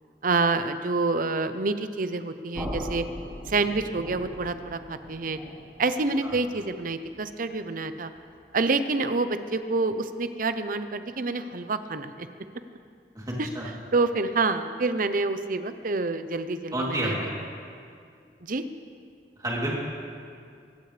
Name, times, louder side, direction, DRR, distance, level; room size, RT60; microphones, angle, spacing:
voice 1, 0.2-3.0 3.5-5.4 5.8-8.1 8.5-12.3 13.4-13.5 13.9-17.2 18.4-18.6, right 3 dB, 50° right, 10 dB, 0.7 m, -27 dB
sound 1, 2.5-8.4, equal, 5° right, 4.3 m, -40 dB
voice 2, 13.1-13.7 16.7-17.3 19.4-19.8, right 1 dB, 20° right, -4 dB, 3.1 m, -30 dB
24.0 x 16.0 x 3.4 m, 2.3 s
head